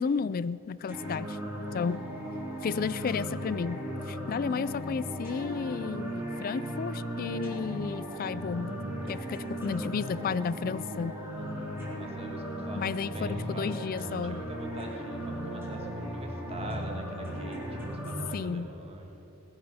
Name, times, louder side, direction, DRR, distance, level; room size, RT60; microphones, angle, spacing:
voice 1, 0.0-2.0 2.6-3.8 4.1-8.7 9.1-11.1 12.8-14.4 18.3-18.7, left 5 dB, 45° left, 17 dB, 0.3 m, -32 dB
sound 1, 0.9-18.3, equal, 10° right, 3.4 m, -37 dB
voice 2, 9.0-9.3 11.4-19.3, right 2 dB, 30° right, 1 dB, 1.6 m, -45 dB
21.0 x 11.0 x 5.5 m, 2.9 s
head